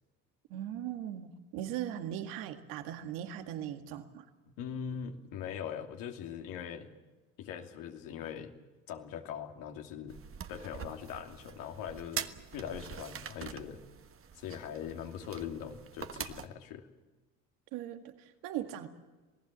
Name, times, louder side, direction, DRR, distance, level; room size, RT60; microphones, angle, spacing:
voice 1, 0.5-4.3 17.7-18.9, right 11 dB, 85° right, 7 dB, 2.0 m, -39 dB
voice 2, 4.6-6.9 7.4-8.5 8.9-10.2 10.5-13.8 14.4-16.9, left 8 dB, 80° left, 3 dB, 2.8 m, -41 dB
sound 1, 10.1-16.5, right 8 dB, 40° right, 1.5 m, -44 dB
27.0 x 18.0 x 7.6 m, 1.2 s
supercardioid pair, 95°, 33 cm